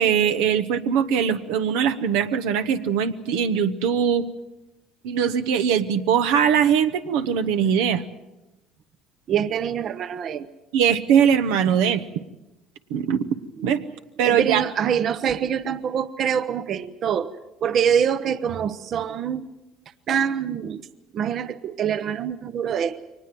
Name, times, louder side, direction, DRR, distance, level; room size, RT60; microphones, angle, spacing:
voice 1, 0.0-4.3 5.0-8.0 10.7-12.0 12.9-13.2 13.6-13.8 14.2-14.6, right 8 dB, 85° right, 8 dB, 1.1 m, -21 dB
voice 2, 9.3-10.5 13.7-13.8 14.2-17.3 17.6-19.5 20.1-20.8 21.1-23.0, right 8 dB, 55° right, 12 dB, 0.9 m, -25 dB
23.0 x 19.5 x 7.7 m, 0.98 s
supercardioid pair, 90°, 0 cm